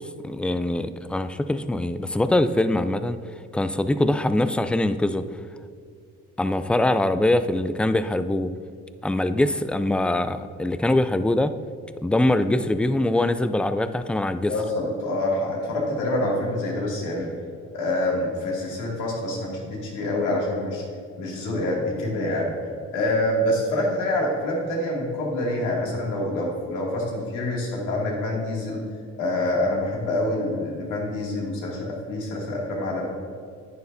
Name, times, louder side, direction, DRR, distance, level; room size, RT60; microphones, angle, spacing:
voice 1, 0.2-3.2 3.5-5.2 6.4-8.5 9.0-11.5 12.0-14.5, left 1 dB, 5° left, 11 dB, 0.3 m, -23 dB
voice 2, 14.5-17.3 17.7-20.8 21.2-22.6 22.9-28.9 29.2-33.1, left 1 dB, 90° left, -3 dB, 2.4 m, -26 dB
11.0 x 9.2 x 2.7 m, 2.2 s
cardioid pair, 90°, 30 cm